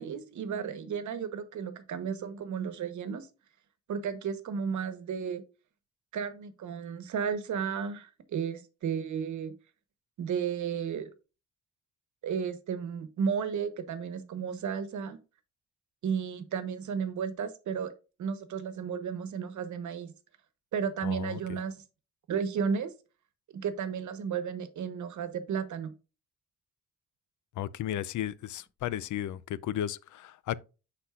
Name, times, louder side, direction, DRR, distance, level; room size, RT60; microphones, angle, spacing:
voice 1, 0.0-3.3 3.9-5.4 6.1-9.5 10.2-11.1 12.2-15.2 16.0-17.9 18.2-20.1 20.7-21.8 22.3-22.9 23.5-25.9, right 7 dB, 75° right, 1.1 m, -33 dB
voice 2, 21.0-21.4 27.6-30.5, left 11 dB, 80° left, 0.5 m, -34 dB
11.5 x 4.1 x 2.4 m
cardioid pair, 115°, 30 cm